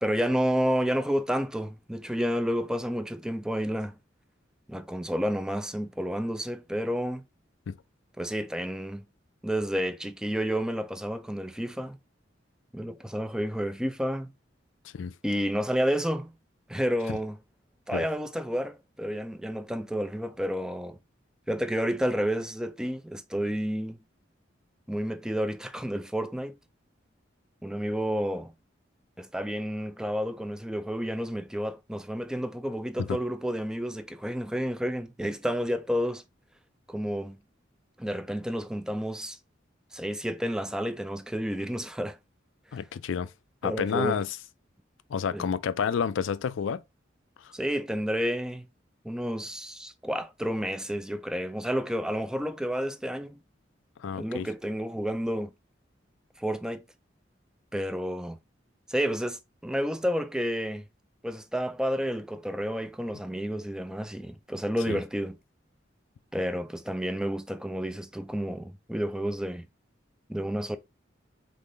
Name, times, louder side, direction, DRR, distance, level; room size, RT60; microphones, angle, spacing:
voice 1, 0.0-4.0 4.7-7.2 8.2-9.0 9.4-12.0 12.7-14.3 15.2-16.3 16.7-17.4 17.9-21.0 21.5-24.0 24.9-26.5 27.6-28.5 29.2-36.2 36.9-37.4 38.0-39.4 39.9-42.2 43.6-44.2 45.3-45.5 47.5-48.7 49.0-53.4 54.1-55.5 56.4-56.8 57.7-58.4 58.9-60.9 61.2-65.4 66.3-69.6 70.3-70.8, equal, 5° right, 0.3 m, -30 dB
voice 2, 42.7-43.3 43.6-44.4 45.1-46.8 47.4-47.5 54.0-54.5 64.9-65.0, left 7 dB, 90° left, 0.4 m, -30 dB
3.7 x 3.1 x 3.8 m
head